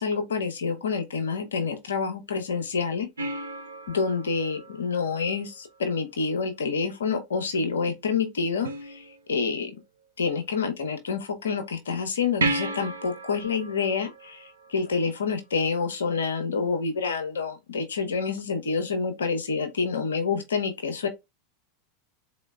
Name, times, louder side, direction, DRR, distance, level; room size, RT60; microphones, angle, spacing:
voice 1, 0.0-3.1 3.9-9.7 10.2-21.1, left 5 dB, 80° left, 0.8 m, -28 dB
sound 1, 3.2-5.8 8.6-9.6 12.4-15.3 18.4-18.5, right 2 dB, 85° right, 0.6 m, -34 dB
3.9 x 3.1 x 2.2 m
hypercardioid pair, 90°, 0 cm